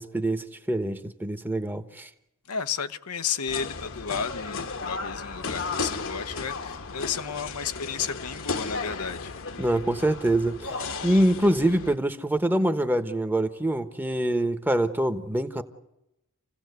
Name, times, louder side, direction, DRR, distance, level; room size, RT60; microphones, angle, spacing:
voice 1, 0.0-2.1 9.6-10.7 11.0-15.6, right 1 dB, 10° right, 1.1 m, -25 dB
voice 2, 2.5-9.3, left 6 dB, 85° left, 0.9 m, -32 dB
sound 1, 3.5-11.9, left 4 dB, 60° left, 1.2 m, -34 dB
28.0 x 16.5 x 8.1 m
head